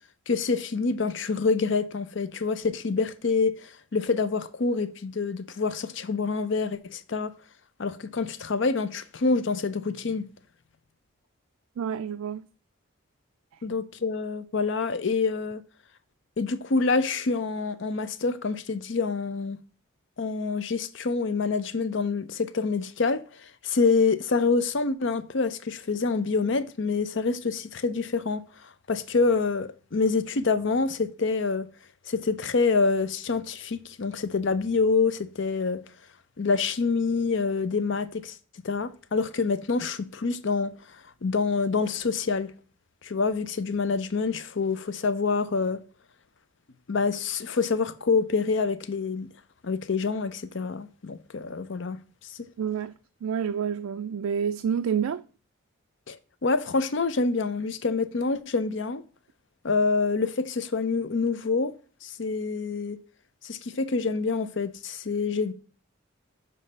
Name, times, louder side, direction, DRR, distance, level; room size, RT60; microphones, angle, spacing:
voice 1, 0.3-7.3 7.8-10.2 13.6-15.6 16.4-19.6 20.2-23.2 23.6-28.4 28.9-31.7 32.1-35.8 36.4-38.4 38.6-40.7 41.2-42.5 43.0-45.8 46.9-49.3 49.6-52.0 52.3-52.4 56.1-56.2 56.4-59.0 59.6-61.7 62.0-63.0 63.4-65.5, left 4 dB, 55° left, 0.5 m, -26 dB
voice 2, 11.8-12.5 52.6-52.9 53.2-55.2, right 7 dB, 80° right, 0.3 m, -28 dB
6.9 x 3.3 x 5.3 m
head